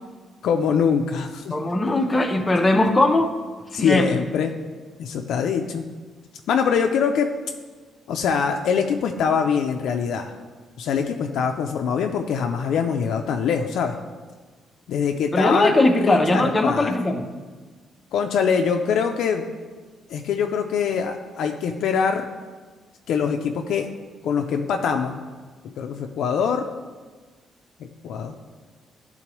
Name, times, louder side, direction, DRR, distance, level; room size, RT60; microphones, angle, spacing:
voice 1, 0.4-1.5 3.7-4.5 5.0-5.8 6.5-7.3 8.1-10.3 10.8-13.9 14.9-17.0 18.1-19.5 20.1-22.3 23.1-23.9 24.2-25.2 25.8-26.7 27.8-28.3, left 6 dB, 70° left, 4 dB, 0.4 m, -23 dB
voice 2, 1.5-3.3 3.7-4.1 15.3-17.3, left 2 dB, 15° left, 4 dB, 0.5 m, -19 dB
11.0 x 3.8 x 3.0 m, 1.4 s
cardioid pair, 160°, 0 cm